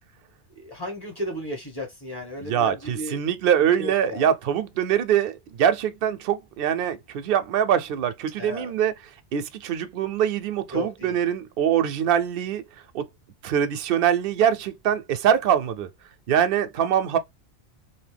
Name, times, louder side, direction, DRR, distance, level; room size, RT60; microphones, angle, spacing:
voice 1, 0.5-3.2 3.8-4.3 8.4-8.7 10.7-11.2, left 1 dB, 20° left, 1.5 m, -34 dB
voice 2, 2.4-8.9 9.3-12.6 12.9-13.1 13.4-15.9 16.3-17.2, right 9 dB, 60° right, 0.7 m, -23 dB
2.7 x 2.7 x 3.3 m
omnidirectional pair, 1.2 m